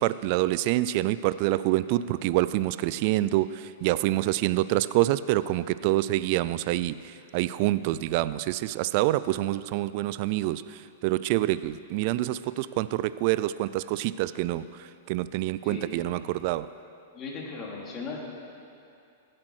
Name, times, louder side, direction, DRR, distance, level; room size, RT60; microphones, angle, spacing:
voice 1, 0.0-16.7, right 16 dB, 50° right, 16 dB, 0.4 m, -27 dB
voice 2, 15.6-16.0 17.1-18.2, left 4 dB, 30° left, -3 dB, 3.0 m, -37 dB
15.5 x 8.6 x 6.4 m, 2.6 s
hypercardioid pair, 115°, 0 cm